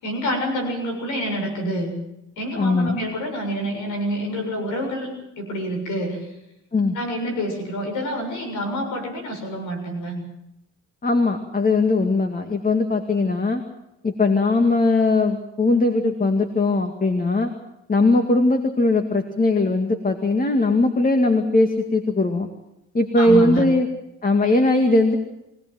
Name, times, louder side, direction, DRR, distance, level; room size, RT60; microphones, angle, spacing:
voice 1, 0.0-1.9 2.4-6.3 6.9-10.2 23.2-23.6, equal, 90° left, 3 dB, 7.2 m, -27 dB
voice 2, 2.6-3.0 6.7-7.0 11.0-13.6 14.0-17.5 17.9-22.5 22.9-23.9 24.2-25.2, left 2 dB, 30° left, 6 dB, 2.2 m, -19 dB
23.5 x 17.5 x 7.8 m, 0.87 s
cardioid pair, 90°, 30 cm